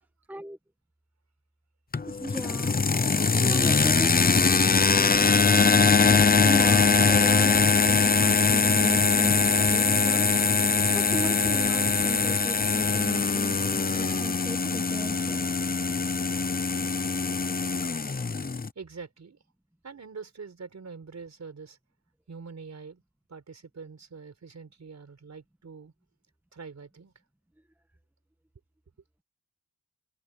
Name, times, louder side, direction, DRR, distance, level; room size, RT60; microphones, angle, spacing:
sound 1, 1.9-18.7, left 4 dB, 25° left, 0.7 m, -22 dB
voice 1, 2.1-2.8 3.1-4.2 6.4-10.3 10.9-15.4, right 1 dB, 5° right, 1.6 m, -37 dB
voice 2, 18.7-19.4 19.8-21.8 22.3-23.0 23.3-25.9 26.5-27.1, right 5 dB, 50° right, 4.7 m, -44 dB
wide cardioid pair, 140°, 34 cm